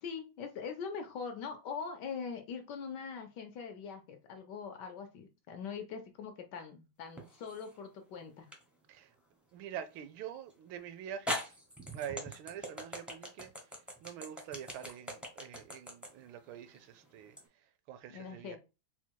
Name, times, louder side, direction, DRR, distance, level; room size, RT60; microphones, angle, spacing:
voice 1, 0.0-8.5 18.1-18.6, left 6 dB, 70° left, 1.1 m, -42 dB
sound 1, 7.2-7.8 8.5-8.6 10.5-10.6 11.3-17.5, left 1 dB, ahead, 0.5 m, -41 dB
voice 2, 9.5-11.6 11.9-18.6, right 9 dB, 80° right, 1.4 m, -46 dB
4.2 x 2.2 x 4.4 m
omnidirectional pair, 2.2 m